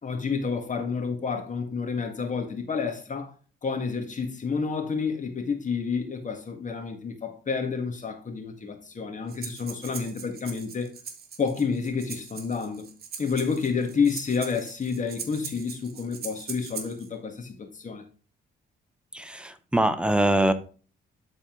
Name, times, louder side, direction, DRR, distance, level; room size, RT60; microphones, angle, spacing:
voice 1, 0.0-3.3 3.6-10.9 11.4-12.9 13.2-18.0, left 5 dB, 40° left, 1.8 m, -29 dB
Breathing, 9.3-17.1, right 6 dB, 50° right, 1.4 m, -41 dB
voice 2, 19.1-20.5, right 1 dB, 5° right, 0.9 m, -23 dB
10.5 x 4.2 x 3.8 m
cardioid pair, 90°, 20 cm